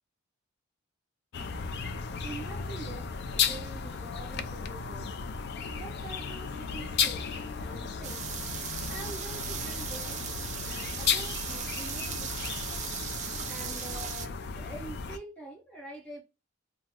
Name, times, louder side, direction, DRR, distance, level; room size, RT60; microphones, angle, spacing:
sound 1, 1.3-15.2, left 6 dB, 55° left, 0.4 m, -34 dB
voice 1, 2.2-5.1 5.7-7.3 7.6-8.3 8.9-12.7 13.5-16.2, right 2 dB, 5° left, 0.8 m, -45 dB
sound 2, 8.0-14.3, right 8 dB, 35° right, 0.4 m, -38 dB
2.9 x 2.0 x 3.5 m
head